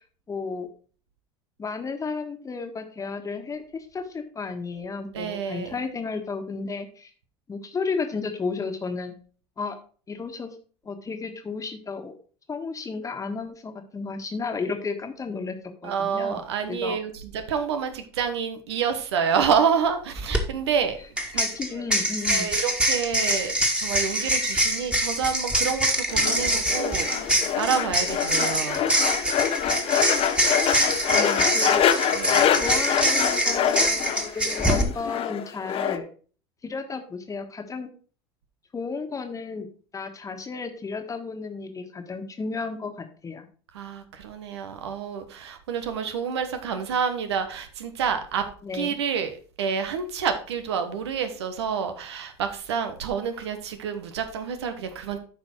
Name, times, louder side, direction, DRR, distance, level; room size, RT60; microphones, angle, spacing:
voice 1, 0.3-0.7 1.6-7.1 7.5-9.1 9.6-9.8 10.1-10.5 10.8-12.1 12.5-15.6 15.8-16.4 16.7-17.0 21.3-22.5 31.1-31.8 32.6-36.1 36.6-37.9 38.7-39.7 39.9-43.5 48.6-48.9, left 4 dB, 25° left, 1.5 m, -33 dB
voice 2, 5.1-5.8 15.8-21.0 21.3-21.8 22.3-28.9 31.1-31.7 32.1-32.7 43.7-48.4 48.7-55.2, right 7 dB, 80° right, 1.2 m, -28 dB
sound 1, 20.2-20.4 21.2-34.8, right 1 dB, 5° right, 1.9 m, -24 dB
sound 2, 26.1-36.0, left 9 dB, 45° left, 0.9 m, -25 dB
9.1 x 5.2 x 4.5 m
hypercardioid pair, 80°, 14 cm